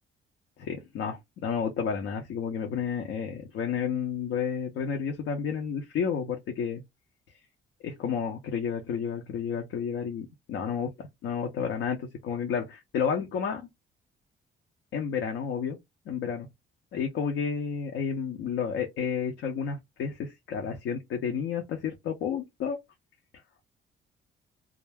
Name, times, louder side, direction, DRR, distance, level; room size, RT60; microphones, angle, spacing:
voice 1, 0.6-6.8 7.8-13.6 14.9-15.8 16.1-16.5 16.9-22.8, left 7 dB, 80° left, 0.6 m, -31 dB
2.3 x 2.1 x 3.3 m
cardioid pair, 90°, 20 cm